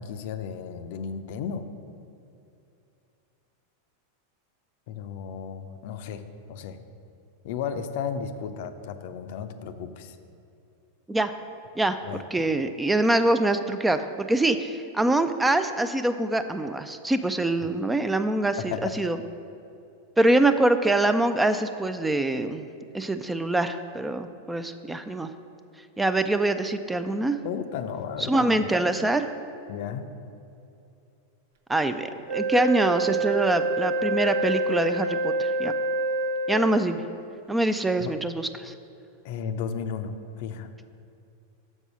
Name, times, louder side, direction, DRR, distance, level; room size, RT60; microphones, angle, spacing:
voice 1, 0.0-1.7 4.9-6.8 7.4-10.2 12.0-12.2 18.7-18.9 27.4-28.6 29.7-30.1 38.0-38.1 39.2-40.7, left 7 dB, 60° left, 9 dB, 0.5 m, -34 dB
voice 2, 12.3-19.2 20.2-22.6 22.9-25.3 26.0-27.4 28.2-29.3 31.7-35.7 36.5-37.0 37.5-38.7, right 2 dB, 10° right, 9 dB, 0.4 m, -24 dB
Wind instrument woodwind instrument, 32.3-37.0, right 2 dB, 65° right, 0.5 m, -27 dB
6.2 x 5.4 x 6.1 m, 2.6 s
hypercardioid pair, 100°, 0 cm